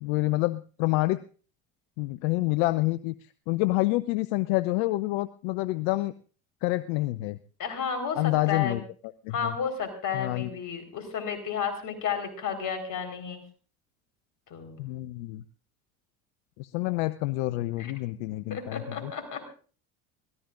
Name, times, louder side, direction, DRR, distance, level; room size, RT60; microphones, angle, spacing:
voice 1, 0.0-1.2 2.0-6.1 6.6-7.4 8.2-8.8 9.2-9.5 10.1-10.5 14.8-15.4 16.6-19.1, left 19 dB, 65° left, 15 dB, 0.7 m, -28 dB
voice 2, 7.6-8.8 9.3-13.4 14.5-14.8 17.8-17.9 18.5-19.5, left 7 dB, 45° left, 5 dB, 4.5 m, -32 dB
23.5 x 18.0 x 2.6 m, 0.41 s
hypercardioid pair, 70°, 43 cm